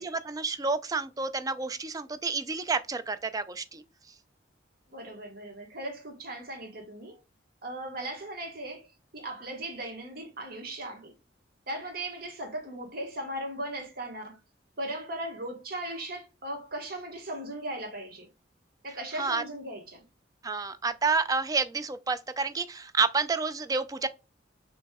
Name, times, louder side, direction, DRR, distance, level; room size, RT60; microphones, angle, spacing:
voice 1, 0.0-3.8 19.2-19.4 20.4-24.1, right 4 dB, 20° right, 0.3 m, -29 dB
voice 2, 4.9-7.2 7.6-11.1 11.7-14.4 14.8-18.3 18.8-20.0, right 1 dB, 55° right, 1.3 m, -38 dB
6.0 x 3.1 x 2.2 m
head